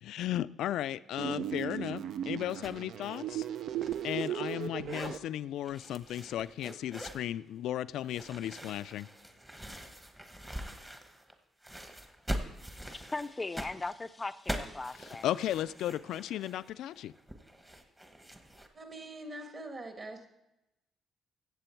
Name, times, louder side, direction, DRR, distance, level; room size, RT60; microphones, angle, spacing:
voice 1, 0.0-3.4 4.0-9.1 15.2-17.1, left 12 dB, 80° left, 17 dB, 0.3 m, -35 dB
sound 1, 1.2-5.2, right 10 dB, 65° right, 0.5 m, -36 dB
sound 2, 2.6-2.8 3.1-4.5 4.8-5.2 5.6-7.3 8.0-11.3 11.6-18.7, equal, 10° right, 1.0 m, -43 dB
voice 2, 12.8-15.3, left 3 dB, 15° left, 13 dB, 0.4 m, -38 dB
voice 3, 18.7-20.3, right 1 dB, 35° right, 5 dB, 1.6 m, -43 dB
15.0 x 7.7 x 4.5 m, 0.92 s
cardioid pair, 135°, 0 cm